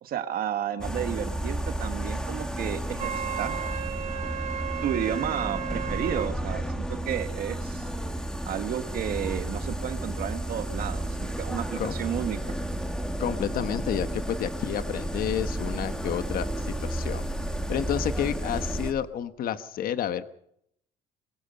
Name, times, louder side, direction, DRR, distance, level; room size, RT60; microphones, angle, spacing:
voice 1, 0.0-3.6 4.8-7.9 8.4-12.4, right 9 dB, 60° right, 8 dB, 1.5 m, -32 dB
sound 1, 0.8-18.9, right 1 dB, 5° left, 2.4 m, -32 dB
Wind instrument woodwind instrument, 3.0-6.3, right 9 dB, 40° right, 0.9 m, -34 dB
voice 2, 13.2-17.2 17.7-20.3, left 9 dB, 60° left, 11 dB, 1.2 m, -30 dB
23.0 x 22.0 x 5.5 m, 0.73 s
cardioid pair, 110°, 17 cm